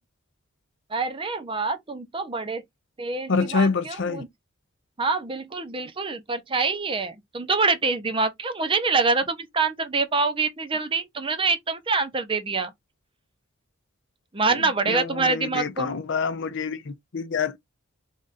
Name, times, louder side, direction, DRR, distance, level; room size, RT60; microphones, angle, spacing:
voice 1, 0.9-2.6 3.0-4.3 5.0-12.7 14.3-15.9, right 4 dB, 25° right, 0.7 m, -25 dB
voice 2, 3.3-4.2 14.5-17.6, left 4 dB, 60° left, 0.6 m, -27 dB
3.6 x 2.5 x 4.0 m
head